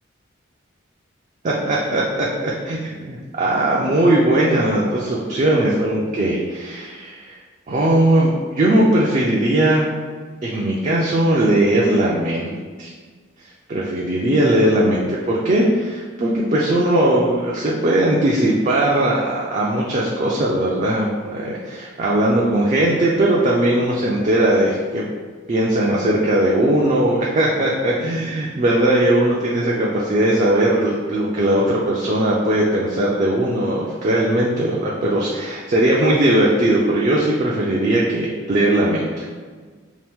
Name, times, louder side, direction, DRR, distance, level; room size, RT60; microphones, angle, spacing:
voice 1, 1.4-7.4 7.7-9.9 10.4-12.5 12.8-12.9 13.4-25.1 25.5-39.2, right 1 dB, 35° right, -4 dB, 0.3 m, -19 dB
2.8 x 2.5 x 3.5 m, 1.5 s
head